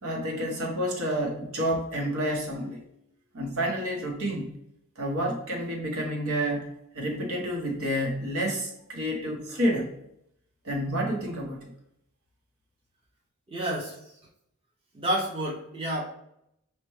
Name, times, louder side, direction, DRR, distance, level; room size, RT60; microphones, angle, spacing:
voice 1, 0.0-2.8 3.3-4.5 5.0-9.9 10.6-11.7, equal, 80° right, -1 dB, 0.9 m, -29 dB
voice 2, 13.5-13.9 14.9-16.0, right 1 dB, 25° right, -4 dB, 0.6 m, -29 dB
5.7 x 2.2 x 3.1 m, 0.77 s
head